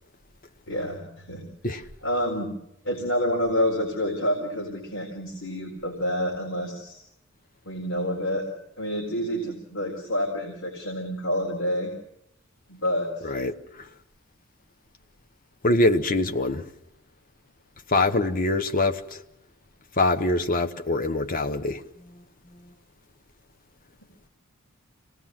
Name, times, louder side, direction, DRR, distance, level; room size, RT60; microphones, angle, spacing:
voice 1, 0.7-1.5 2.0-2.5 2.8-7.0 7.7-8.5 8.8-11.9 12.7-13.4, equal, 70° left, 4.0 m, -28 dB
voice 2, 13.2-13.9 15.6-16.6 17.9-19.2 20.0-22.2 22.5-22.6, left 2 dB, 40° left, 1.1 m, -24 dB
26.5 x 19.0 x 7.6 m
head